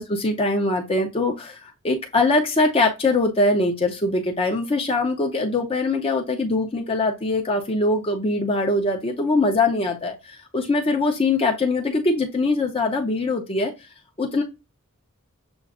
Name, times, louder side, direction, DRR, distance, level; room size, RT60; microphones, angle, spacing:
voice 1, 0.0-13.7 14.2-14.4, left 2 dB, 25° left, 0.6 m, -22 dB
6.9 x 2.4 x 2.4 m
head